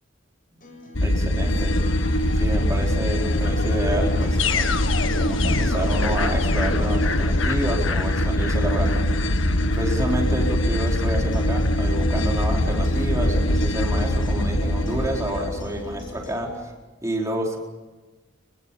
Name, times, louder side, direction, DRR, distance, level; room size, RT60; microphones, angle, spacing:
Acoustic guitar, 0.6-16.6, left 2 dB, 45° left, 7.4 m, -44 dB
sound 1, 1.0-16.3, left 1 dB, 85° left, 1.7 m, -23 dB
voice 1, 1.0-1.8 2.3-4.8 5.2-9.2 9.7-16.5 17.0-17.6, equal, 15° right, -1 dB, 4.4 m, -29 dB
sound 2, 1.4-15.1, left 1 dB, 70° left, 4.6 m, -33 dB
27.5 x 22.5 x 7.3 m, 1.2 s
head